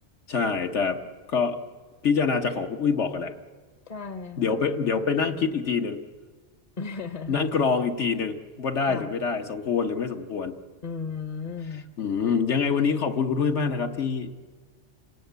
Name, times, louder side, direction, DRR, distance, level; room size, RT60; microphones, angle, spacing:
voice 1, 0.3-1.0 1.3-1.6 2.0-3.3 4.4-6.0 7.3-10.6 12.0-14.3, left 5 dB, 80° left, 4 dB, 1.5 m, -25 dB
voice 2, 3.9-4.6 6.8-7.4 8.8-9.2 10.8-11.9, left 5 dB, 40° left, 9 dB, 0.8 m, -35 dB
28.5 x 18.0 x 8.1 m, 1.5 s
omnidirectional pair, 1.2 m